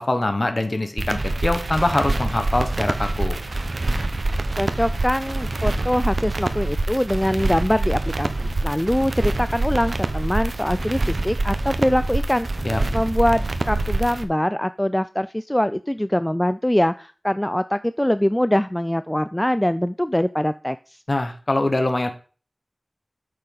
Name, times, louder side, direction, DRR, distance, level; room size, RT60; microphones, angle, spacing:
voice 1, 0.0-3.4 12.6-12.8 21.1-22.1, left 2 dB, 50° left, 7 dB, 1.2 m, -23 dB
sound 1, 1.0-14.2, right 2 dB, 75° right, 0.8 m, -25 dB
voice 2, 4.5-12.7 12.9-21.0, left 1 dB, 15° left, 13 dB, 0.3 m, -23 dB
8.5 x 6.7 x 4.0 m, 0.37 s
wide cardioid pair, 55°, 0 cm